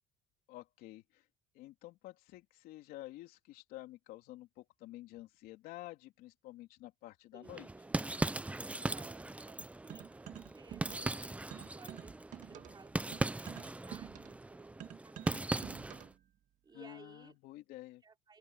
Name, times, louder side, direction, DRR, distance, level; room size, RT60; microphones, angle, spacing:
voice 1, 0.5-1.2 1.5-7.7 15.3-15.4 16.7-18.0, left 16 dB, 70° left, 3.4 m, -50 dB
voice 2, 7.3-7.9 8.9-11.0 11.4-12.2 12.5-16.1 16.6-17.3 18.0-18.4, right 5 dB, 25° right, 4.7 m, -58 dB
sound 1, 7.5-16.1, right 2 dB, 10° right, 0.7 m, -39 dB
sound 2, 9.9-11.2 11.5-16.2, right 11 dB, 55° right, 1.9 m, -49 dB
open air
supercardioid pair, 100°, 16 cm